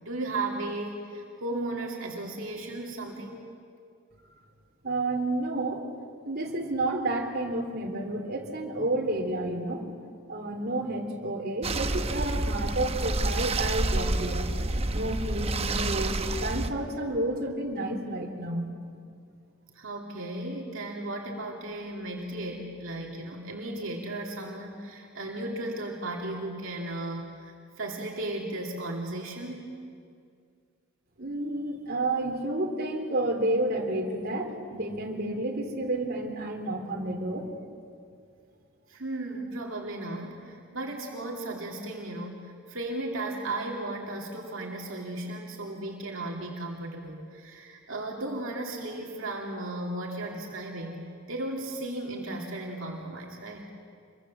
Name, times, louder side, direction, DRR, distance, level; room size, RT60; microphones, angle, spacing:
voice 1, 0.0-3.5 19.7-29.8 38.9-51.0 51.3-53.7, right 2 dB, 65° right, -1 dB, 2.7 m, -35 dB
voice 2, 4.8-5.8 6.2-9.8 10.3-14.5 14.9-18.7 31.2-37.5, right 2 dB, 45° right, 1 dB, 3.1 m, -30 dB
sound 1, 11.6-16.7, right 2 dB, 30° right, 0.9 m, -29 dB
26.0 x 23.0 x 7.3 m, 2.3 s
head